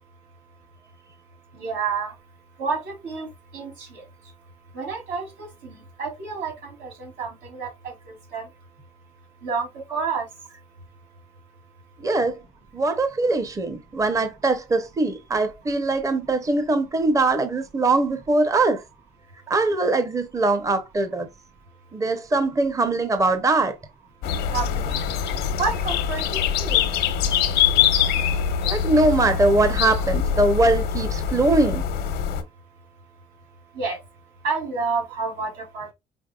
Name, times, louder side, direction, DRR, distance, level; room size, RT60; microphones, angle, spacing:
voice 1, 1.5-2.1 2.6-3.3 3.5-4.0 4.7-7.9 8.3-8.4 9.4-10.2 24.5-25.0 25.6-26.8 33.7-34.0 34.4-35.9, right 5 dB, 85° right, 2.9 m, -29 dB
voice 2, 12.0-12.4 12.7-18.8 19.5-21.3 21.9-23.7 28.6-31.8, right 2 dB, 20° right, 0.7 m, -22 dB
sound 1, 24.2-32.4, left 8 dB, 85° left, 1.0 m, -23 dB
5.2 x 4.4 x 2.3 m
cardioid pair, 110°, 17 cm